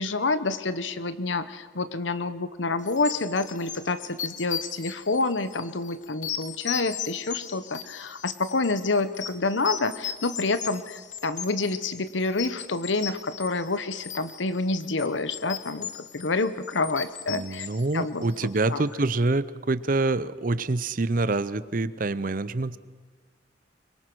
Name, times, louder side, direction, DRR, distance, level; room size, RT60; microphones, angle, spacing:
voice 1, 0.0-17.7 17.9-18.8, left 3 dB, 80° left, 13 dB, 1.0 m, -28 dB
sound 1, 2.8-18.7, left 9 dB, 40° left, 1.1 m, -38 dB
voice 2, 17.3-22.8, right 2 dB, 45° right, 16 dB, 0.7 m, -26 dB
24.5 x 22.5 x 6.2 m, 1.4 s
head